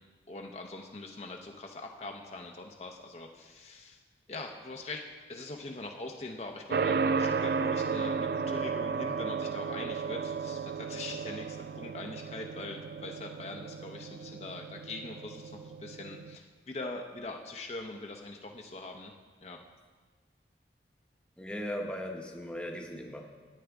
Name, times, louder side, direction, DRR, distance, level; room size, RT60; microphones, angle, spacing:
voice 1, 0.3-4.0 4.3-5.0 5.3-19.1 19.4-19.6, left 2 dB, 35° left, 2 dB, 0.6 m, -42 dB
sound 1, 6.7-16.4, right 5 dB, 55° right, 0.3 m, -34 dB
voice 2, 21.4-23.2, equal, 5° left, 1 dB, 0.8 m, -38 dB
13.5 x 9.1 x 3.5 m, 1.5 s
head